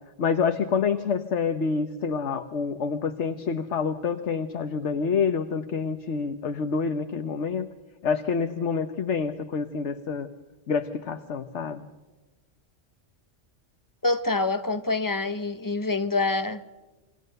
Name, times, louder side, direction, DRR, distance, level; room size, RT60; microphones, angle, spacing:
voice 1, 0.2-7.7 8.0-10.3 10.7-11.9, left 5 dB, 65° left, 1.4 m, -27 dB
voice 2, 14.0-16.6, left 3 dB, 15° left, 1.0 m, -26 dB
29.0 x 24.5 x 6.7 m
omnidirectional pair, 1.3 m